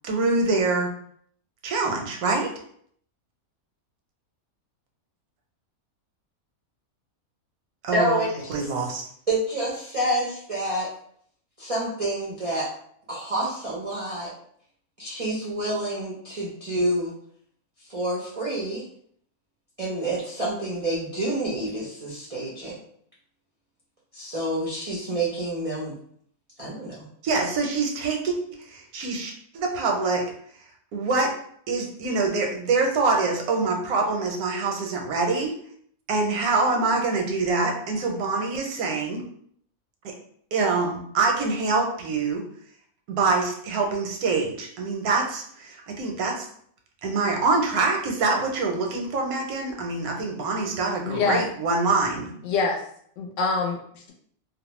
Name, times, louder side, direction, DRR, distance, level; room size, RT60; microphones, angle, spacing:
voice 1, 0.0-0.9 1.6-2.5 7.8-8.2 8.5-9.1 27.2-30.2 30.9-31.3 31.7-35.5 36.1-39.2 40.0-40.1 40.5-42.4 43.1-46.5 47.0-52.3, right 3 dB, 85° right, 2 dB, 1.1 m, -25 dB
voice 2, 7.9-8.7 9.3-10.9 11.6-12.7 13.1-14.3 15.0-17.2 17.8-18.9 19.8-22.8 24.1-26.0 26.6-27.0, right 1 dB, 55° right, -6 dB, 0.3 m, -28 dB
voice 3, 51.0-51.4 52.4-52.8 53.2-54.1, left 4 dB, 65° left, -1 dB, 0.9 m, -25 dB
2.6 x 2.0 x 3.0 m, 0.64 s
omnidirectional pair, 1.5 m